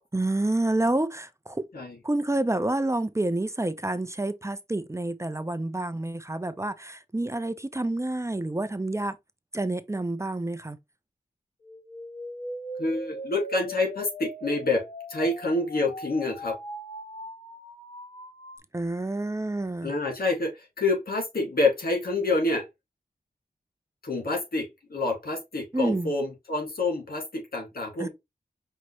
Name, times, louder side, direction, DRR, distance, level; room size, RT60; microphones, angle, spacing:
voice 1, 0.1-1.7 2.0-9.2 9.5-10.8 18.7-20.0 25.7-26.1 28.0-28.1, right 2 dB, 20° right, 0.5 m, -28 dB
sound 1, 11.6-18.6, equal, 35° left, 1.5 m, -40 dB
voice 2, 12.8-14.8 15.1-16.6 19.8-22.7 24.0-28.1, left 2 dB, 90° left, 2.0 m, -27 dB
5.5 x 2.9 x 3.0 m
wide cardioid pair, 60°, 15 cm